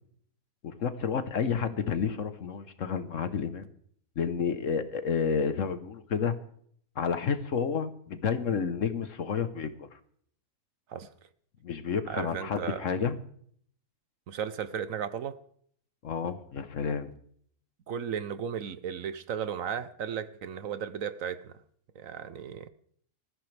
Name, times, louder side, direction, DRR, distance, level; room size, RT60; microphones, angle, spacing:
voice 1, 0.6-3.7 4.2-6.3 7.0-9.9 11.6-13.2 16.0-17.1, left 6 dB, 60° left, 10 dB, 1.3 m, -30 dB
voice 2, 12.1-12.8 14.3-15.4 17.9-21.6 21.9-22.7, right 8 dB, 65° right, 13 dB, 1.1 m, -35 dB
20.0 x 14.5 x 3.4 m, 0.62 s
omnidirectional pair, 1.6 m